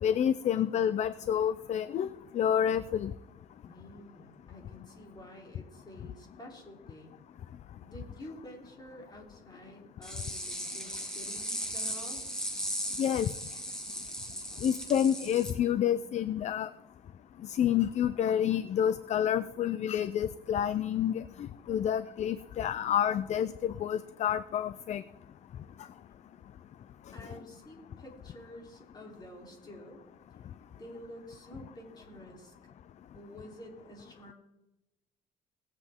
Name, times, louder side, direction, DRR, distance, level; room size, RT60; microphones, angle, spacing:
voice 1, 0.0-2.1 2.3-3.1 13.0-13.3 14.6-16.7 17.5-25.0, left 9 dB, 45° left, 15 dB, 0.4 m, -29 dB
voice 2, 3.7-7.1 7.8-12.2 27.1-30.0 30.7-32.5 33.1-34.3, equal, 25° left, 0 dB, 3.5 m, -49 dB
sound 1, 10.0-15.5, equal, 5° left, 2.1 m, -37 dB
19.0 x 8.2 x 3.6 m, 0.98 s
cardioid pair, 110°, 17 cm